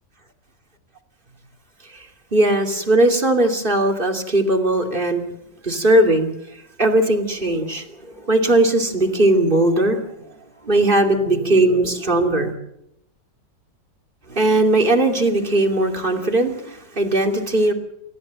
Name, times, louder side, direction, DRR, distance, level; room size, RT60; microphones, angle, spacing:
voice 1, 1.9-5.3 5.6-6.3 6.8-10.1 10.6-12.6 14.3-17.7, right 1 dB, 30° right, 3 dB, 2.8 m, -19 dB
29.0 x 14.0 x 7.5 m, 0.80 s
omnidirectional pair, 1.9 m